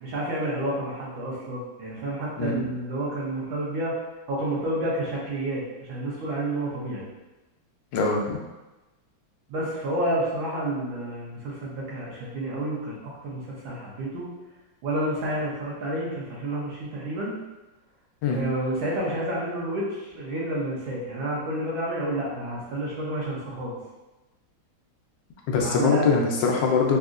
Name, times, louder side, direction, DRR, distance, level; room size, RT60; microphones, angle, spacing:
voice 1, 0.0-3.9 4.3-7.1 9.5-13.0 13.2-14.3 14.8-17.3 18.3-23.8 25.6-26.1, right 1 dB, 80° right, -6 dB, 1.8 m, -30 dB
voice 2, 7.9-8.4 18.2-18.4 25.5-27.0, left 4 dB, 75° left, 0 dB, 1.2 m, -23 dB
4.1 x 2.7 x 2.4 m, 1.1 s
omnidirectional pair, 2.2 m